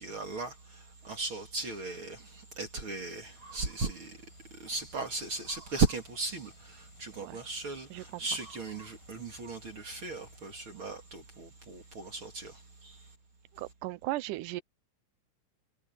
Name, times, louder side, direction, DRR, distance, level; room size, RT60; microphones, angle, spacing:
voice 1, 0.0-4.2 4.6-13.0, right 4 dB, 40° right, 2.9 m, -36 dB
sound 1, 3.2-10.6, right 1 dB, 80° left, 7.2 m, -58 dB
voice 2, 13.6-14.6, right 18 dB, 85° right, 2.2 m, -36 dB
omnidirectional pair, 3.7 m